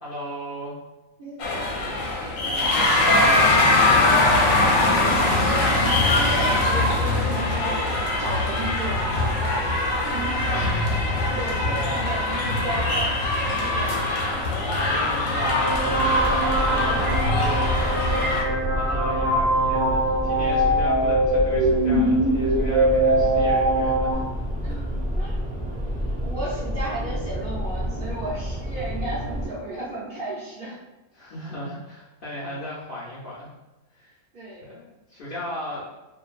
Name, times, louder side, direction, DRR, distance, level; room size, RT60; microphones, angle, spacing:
voice 1, 0.0-0.7 2.3-4.4 11.6-12.1 14.5-18.0 18.5-24.2 31.1-33.5 33.9-34.2 34.6-35.9, equal, 55° left, -8 dB, 0.6 m, -36 dB
sound 1, 1.4-18.4, left 2 dB, 75° left, 1.0 m, -22 dB
voice 2, 5.4-9.6 10.0-10.7 11.3-14.0 24.6-25.4 26.2-30.8 34.3-34.7, right 1 dB, 60° right, -9 dB, 0.5 m, -33 dB
sound 2, 15.4-24.1, right 1 dB, 75° right, 1.0 m, -22 dB
sound 3, 15.7-29.5, equal, 10° right, 0.4 m, -29 dB
2.5 x 2.2 x 2.4 m, 1.1 s
omnidirectional pair, 1.5 m